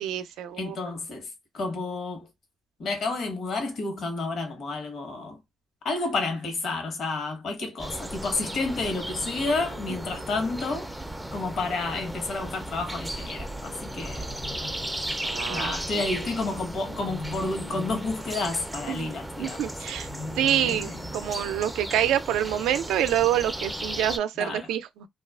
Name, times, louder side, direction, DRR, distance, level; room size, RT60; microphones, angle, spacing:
voice 1, 0.0-0.8 9.9-10.2 15.2-16.0 18.9-19.1 19.4-20.1 20.4-25.1, right 11 dB, 90° right, 0.4 m, -27 dB
voice 2, 0.6-1.3 1.5-2.3 2.8-5.4 5.8-10.9 11.3-14.3 15.5-19.7 20.7-21.0 24.4-24.7, left 3 dB, 65° left, 1.0 m, -30 dB
sound 1, 7.8-24.2, right 1 dB, 5° right, 0.4 m, -35 dB
sound 2, 13.5-15.6 16.7-19.4 19.9-22.2, left 3 dB, 40° left, 0.6 m, -42 dB
2.3 x 2.3 x 2.3 m
cardioid pair, 90°, 0 cm